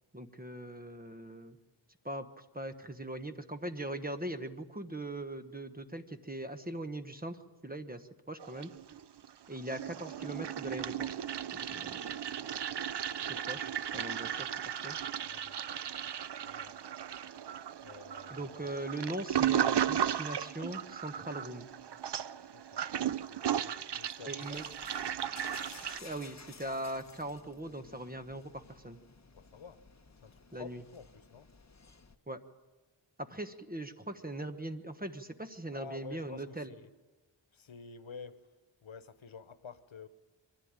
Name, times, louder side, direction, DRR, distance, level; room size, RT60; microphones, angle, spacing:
voice 1, 0.1-1.6 2.0-8.7 9.5-11.1 11.5-12.1 13.5-14.5 14.8-15.0 18.3-21.7 24.3-24.6 25.8-29.0 30.5-30.8 32.3-32.4 33.2-36.7, right 1 dB, 20° right, 1.2 m, -40 dB
Toilet flush, 8.4-9.3 9.5-26.0, right 9 dB, 60° right, 0.6 m, -35 dB
voice 2, 15.3-15.7 16.4-16.9 17.8-18.6 22.5-24.6 29.3-29.8 30.2-31.5 35.7-36.9 37.5-38.5 38.8-40.1, left 5 dB, 90° left, 1.1 m, -50 dB
sound 1, 24.4-32.2, left 4 dB, 35° left, 1.1 m, -54 dB
23.5 x 15.0 x 8.9 m
wide cardioid pair, 75°, 46 cm